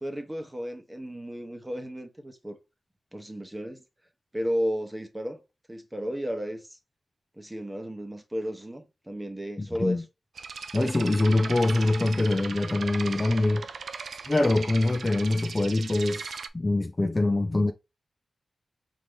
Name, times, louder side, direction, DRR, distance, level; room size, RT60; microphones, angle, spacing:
voice 1, 0.0-2.6 3.1-3.8 4.3-5.4 5.7-6.8 7.4-10.0, equal, 10° right, 1.0 m, -33 dB
voice 2, 9.6-10.0 10.7-13.7 14.3-17.7, left 2 dB, 25° left, 0.4 m, -24 dB
sound 1, 10.4-16.5, right 5 dB, 80° right, 0.4 m, -38 dB
4.6 x 2.7 x 3.4 m
wide cardioid pair, 95°, 0 cm